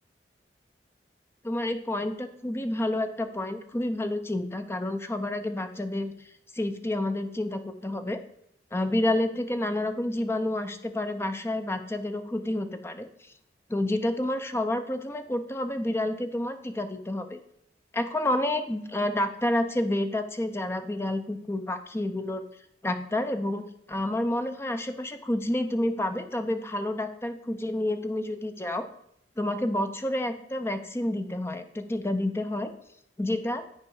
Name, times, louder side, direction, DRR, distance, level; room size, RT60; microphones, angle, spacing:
voice 1, 1.4-6.1 6.5-8.2 8.7-13.1 13.7-17.4 17.9-22.4 22.8-28.9 29.4-32.7 33.2-33.6, left 1 dB, 15° left, 8 dB, 0.6 m, -29 dB
9.8 x 4.6 x 4.7 m, 0.73 s
head